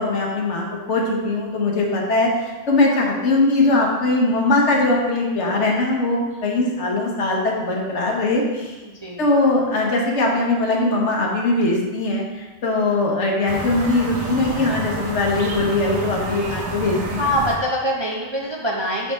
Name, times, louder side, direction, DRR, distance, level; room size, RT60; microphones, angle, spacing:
voice 1, 0.0-2.3 2.7-8.7 9.2-17.3, left 2 dB, 70° left, -1 dB, 1.3 m, -20 dB
voice 2, 8.8-9.3 17.2-19.1, equal, 35° right, -3 dB, 0.5 m, -24 dB
sound 1, 13.5-17.5, right 2 dB, 65° right, 1.1 m, -29 dB
5.8 x 5.7 x 3.4 m, 1.2 s
omnidirectional pair, 1.3 m